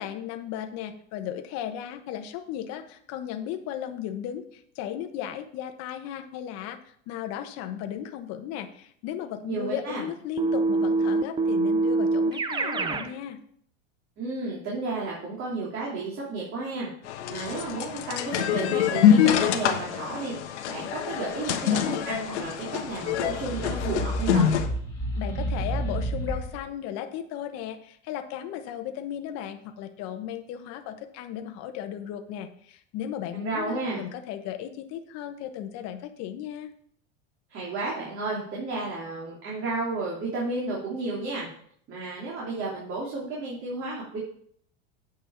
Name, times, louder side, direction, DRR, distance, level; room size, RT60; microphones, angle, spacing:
voice 1, 0.0-6.8 7.1-13.4 25.1-36.7, left 10 dB, 50° left, 6 dB, 1.2 m, -35 dB
voice 2, 9.5-10.0 14.2-16.9 17.3-24.4 33.3-34.0 37.5-41.5 41.9-44.2, right 3 dB, 40° right, -5 dB, 3.1 m, -32 dB
Keyboard (musical), 10.4-13.1, right 3 dB, 15° right, 0.6 m, -24 dB
sound 1, 17.1-24.7, left 9 dB, 85° left, 1.2 m, -25 dB
sound 2, 23.0-26.7, right 1 dB, 10° left, 2.8 m, -31 dB
9.0 x 5.6 x 5.8 m, 0.62 s
supercardioid pair, 130°, 33 cm